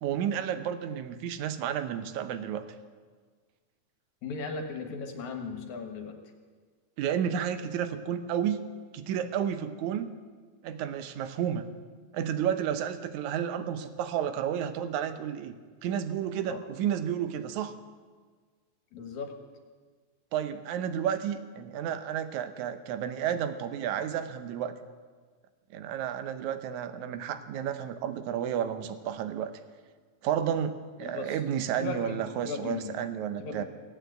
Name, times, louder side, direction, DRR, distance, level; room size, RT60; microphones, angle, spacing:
voice 1, 0.0-2.7 7.0-8.6 8.9-10.1 10.6-11.6 12.1-15.5 15.8-17.8 20.3-24.7 25.7-29.5 30.2-33.6, right 9 dB, 75° right, 9 dB, 2.1 m, -31 dB
voice 2, 4.2-6.2 16.5-16.6 18.9-19.4 31.0-31.4 31.8-33.0 33.4-33.6, left 4 dB, 70° left, 4 dB, 2.6 m, -37 dB
17.0 x 9.2 x 7.9 m, 1.5 s
omnidirectional pair, 3.6 m